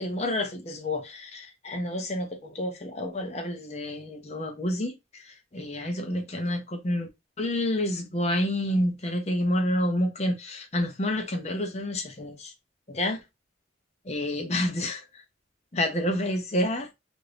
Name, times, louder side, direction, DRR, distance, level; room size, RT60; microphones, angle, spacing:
voice 1, 0.0-7.1 7.4-12.5 12.9-13.2 14.0-15.2 15.7-16.9, left 1 dB, 35° left, 0.7 m, -29 dB
2.9 x 2.6 x 3.2 m
head